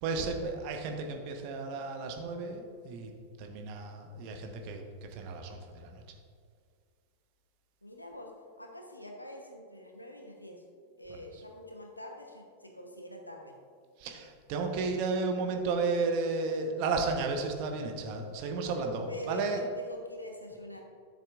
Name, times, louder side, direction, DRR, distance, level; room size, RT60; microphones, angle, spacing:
voice 1, 0.0-3.1 3.4-6.0 11.1-11.2 14.0-19.6, right 4 dB, 45° right, 4 dB, 1.1 m, -33 dB
voice 2, 7.8-8.3 8.6-10.6 11.0-13.6 14.8-14.9 19.0-20.8, left 1 dB, 85° left, 2 dB, 1.0 m, -44 dB
11.0 x 7.2 x 2.5 m, 2.1 s
figure-of-eight pair, 90°, 0 cm